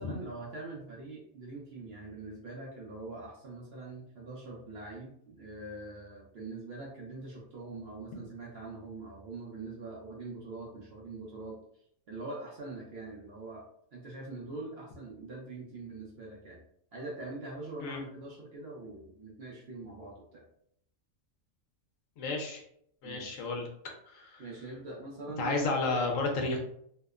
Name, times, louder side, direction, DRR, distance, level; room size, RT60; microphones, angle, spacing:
voice 1, 0.0-11.6 12.1-13.6 13.9-16.6 16.9-20.4 23.0-23.5 24.4-26.0, right 3 dB, 60° right, -3 dB, 0.7 m, -43 dB
voice 2, 22.2-22.6 23.0-23.7 24.1-24.4 25.4-26.6, left 3 dB, 70° left, 2 dB, 0.9 m, -32 dB
2.8 x 2.0 x 2.3 m, 0.70 s
omnidirectional pair, 1.4 m